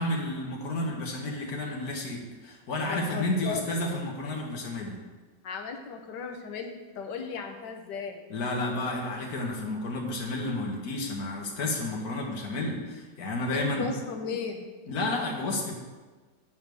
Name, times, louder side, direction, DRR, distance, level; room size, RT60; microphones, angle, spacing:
voice 1, 0.0-5.0 8.3-13.9 14.9-15.8, left 2 dB, 60° left, -1 dB, 1.9 m, -31 dB
voice 2, 2.9-3.6 5.4-8.2 13.5-14.7, left 5 dB, 80° left, 3 dB, 1.6 m, -36 dB
9.2 x 5.3 x 6.3 m, 1.3 s
omnidirectional pair, 1.8 m